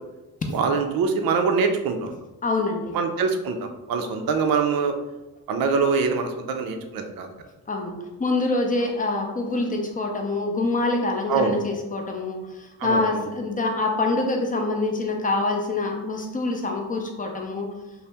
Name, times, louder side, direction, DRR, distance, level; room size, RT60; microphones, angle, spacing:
voice 1, 0.5-2.1 2.9-4.9 5.5-7.3 11.3-11.5 12.8-13.2, right 5 dB, 60° right, 5 dB, 0.5 m, -24 dB
voice 2, 2.4-3.0 4.0-4.1 7.7-17.7, left 2 dB, 20° left, 2 dB, 0.5 m, -25 dB
2.7 x 2.1 x 3.3 m, 1.0 s
cardioid pair, 85°, 40 cm